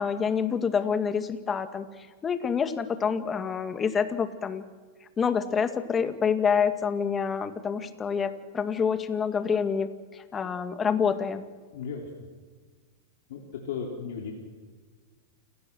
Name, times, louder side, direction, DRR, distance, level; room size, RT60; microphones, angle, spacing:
voice 1, 0.0-1.9 2.2-4.6 5.2-11.4, left 6 dB, 25° left, 9 dB, 1.9 m, -27 dB
voice 2, 11.7-12.1 13.3-14.3, left 6 dB, 70° left, -1 dB, 3.8 m, -35 dB
29.0 x 18.0 x 6.3 m, 1.5 s
hypercardioid pair, 110°, 0 cm